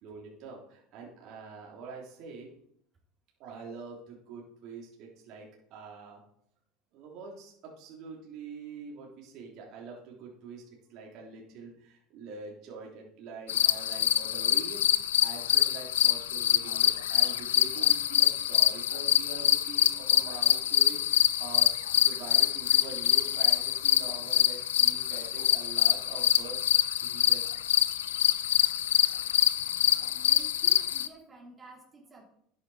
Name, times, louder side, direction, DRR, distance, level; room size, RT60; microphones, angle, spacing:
voice 1, 0.0-2.5 3.4-6.2 6.9-10.6 10.9-14.8 15.2-21.7 21.9-27.4, right 4 dB, 55° right, -2 dB, 3.2 m, -45 dB
sound 1, 13.5-31.1, left 11 dB, 80° left, 0.6 m, -25 dB
voice 2, 29.8-32.2, right 2 dB, 25° right, -2 dB, 4.0 m, -52 dB
11.0 x 9.5 x 4.2 m, 0.69 s
hypercardioid pair, 80°, 0 cm